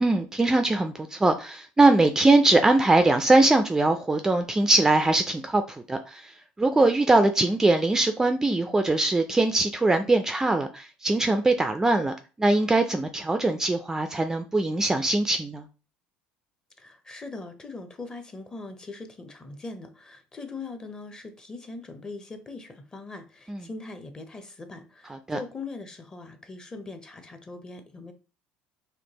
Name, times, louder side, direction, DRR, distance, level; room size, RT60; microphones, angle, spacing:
voice 1, 0.0-6.3 6.6-15.7 23.5-23.6 25.1-25.4, right 2 dB, 15° right, 0.3 m, -22 dB
voice 2, 16.8-28.1, left 3 dB, 20° left, 0.7 m, -41 dB
4.3 x 2.6 x 2.9 m
supercardioid pair, 105°, 4 cm